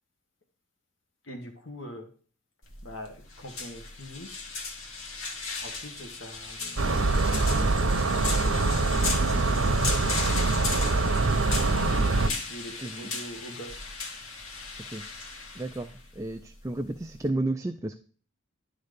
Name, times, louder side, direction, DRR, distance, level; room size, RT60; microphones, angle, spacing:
voice 1, 1.2-2.1 2.8-4.3 5.6-7.0 8.0-11.2 11.8-13.8, equal, 65° left, 2 dB, 1.5 m, -43 dB
sound 1, 2.6-17.3, left 4 dB, 85° left, 1.7 m, -36 dB
sound 2, 6.8-12.3, right 3 dB, 75° right, 0.8 m, -24 dB
voice 2, 15.6-18.0, right 2 dB, 15° right, 6 dB, 0.4 m, -32 dB
11.0 x 4.0 x 5.1 m, 0.42 s
head